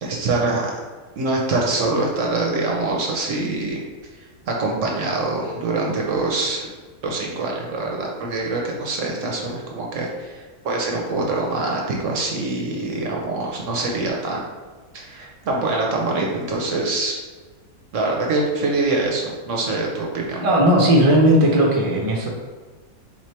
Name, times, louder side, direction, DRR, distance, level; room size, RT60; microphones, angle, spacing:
voice 1, 0.0-0.8 1.2-3.8 4.1-6.7 7.0-14.5 14.9-17.1 17.9-20.4, right 2 dB, 60° right, -1 dB, 0.9 m, -24 dB
voice 2, 20.4-22.3, right 1 dB, 35° right, -1 dB, 0.6 m, -16 dB
3.9 x 3.1 x 4.4 m, 1.4 s
omnidirectional pair, 1.6 m